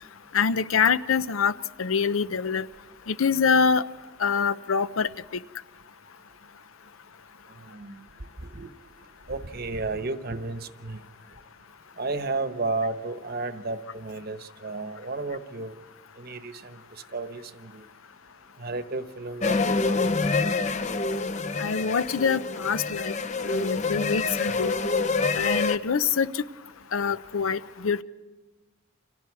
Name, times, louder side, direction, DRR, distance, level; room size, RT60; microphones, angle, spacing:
voice 1, 0.3-1.5 1.8-2.6 3.1-3.8 4.2-5.1 21.6-23.1 23.4-24.7 25.4-26.4 26.9-28.0, left 6 dB, 80° left, 15 dB, 0.7 m, -25 dB
voice 2, 7.6-8.0 8.5-8.7 9.3-11.0 12.0-15.7 16.2-17.8 18.6-19.6 24.5-24.6, right 3 dB, 50° right, 10 dB, 1.0 m, -33 dB
sound 1, 19.4-25.8, left 3 dB, 35° left, 0.7 m, -26 dB
29.5 x 27.0 x 4.8 m, 1.2 s
head